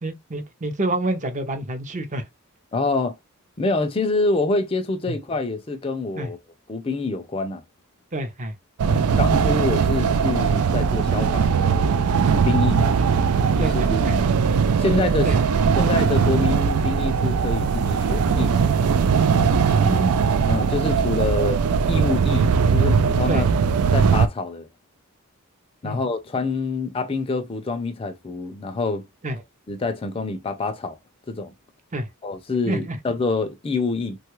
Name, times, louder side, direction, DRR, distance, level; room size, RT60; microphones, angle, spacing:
voice 1, 0.0-2.3 5.1-5.2 6.2-6.3 8.1-8.5 8.9-9.0 13.6-14.2 15.2-15.6 19.8-20.2 23.3-23.4 25.8-26.0 29.2-29.4 31.9-32.1 32.7-33.0, right 2 dB, 35° right, 0.6 m, -28 dB
voice 2, 2.7-3.2 3.6-6.4 6.7-7.6 8.8-12.0 12.4-12.8 13.6-14.3 14.8-15.3 15.8-18.9 20.5-21.6 21.9-23.5 23.9-24.7 25.8-29.1 29.7-31.0 31.3-31.5 32.2-34.2, left 3 dB, 25° left, 0.4 m, -26 dB
sound 1, 8.8-24.3, right 6 dB, 85° right, 0.4 m, -20 dB
3.1 x 2.3 x 3.0 m
head